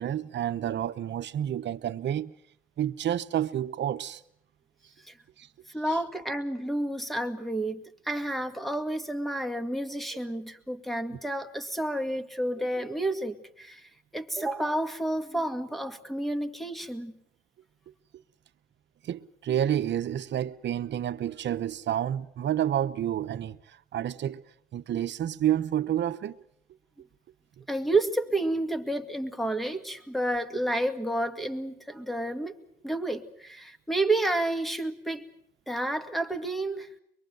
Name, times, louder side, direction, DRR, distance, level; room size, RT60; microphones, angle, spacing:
voice 1, 0.0-2.3 2.8-4.2 5.4-5.5 5.9-6.0 19.0-24.4 24.7-26.4, right 11 dB, 65° right, 0.9 m, -29 dB
voice 2, 5.7-17.1 27.7-32.5 32.8-35.2 35.7-36.9, right 1 dB, ahead, 2.1 m, -30 dB
24.0 x 22.5 x 7.8 m
cardioid pair, 90°, 20 cm